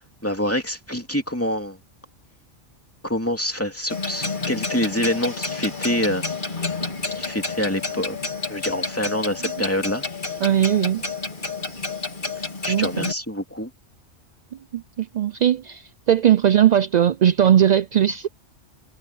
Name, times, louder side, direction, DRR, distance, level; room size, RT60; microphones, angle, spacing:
voice 1, 0.2-1.8 3.0-6.2 7.1-8.2 8.5-10.1 12.6-13.7, left 1 dB, 10° left, 2.7 m, -26 dB
Clock, 3.9-13.1, left 3 dB, 40° left, 2.9 m, -30 dB
voice 2, 10.4-11.0 12.7-13.1 14.7-18.3, right 10 dB, 65° right, 0.4 m, -19 dB
omnidirectional pair, 1.2 m